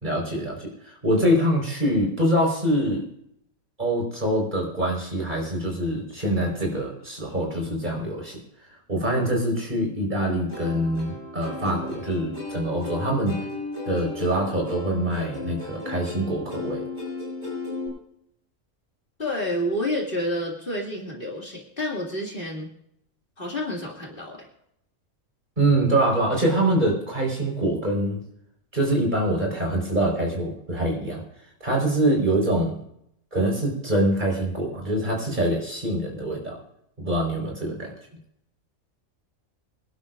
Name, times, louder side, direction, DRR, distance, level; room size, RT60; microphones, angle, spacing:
voice 1, 0.0-3.1 3.8-8.4 8.9-13.4 13.8-16.9 25.6-28.2 28.7-31.2 31.6-32.8 33.3-36.6 37.0-37.9, right 1 dB, 35° right, 0 dB, 4.8 m, -24 dB
Plucked string instrument, 10.5-17.9, left 2 dB, 55° right, 6.1 m, -35 dB
voice 2, 19.2-22.7 23.4-24.5, left 1 dB, 40° left, -2 dB, 2.6 m, -29 dB
25.0 x 11.5 x 2.5 m, 0.74 s
omnidirectional pair, 1.4 m